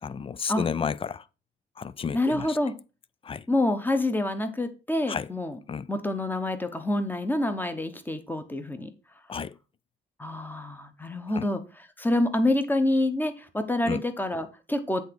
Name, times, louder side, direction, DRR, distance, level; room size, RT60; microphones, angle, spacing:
voice 1, 0.0-1.3 1.8-2.6 3.2-3.5 5.1-5.3 5.7-5.9 9.3-9.6 11.3-11.5 13.8-14.0, left 6 dB, 30° left, 0.4 m, -32 dB
voice 2, 2.1-2.7 3.5-5.6 5.9-8.9 10.2-11.6 12.0-15.0, left 1 dB, 10° left, 1.0 m, -27 dB
8.1 x 3.5 x 5.2 m
cardioid pair, 90°, 20 cm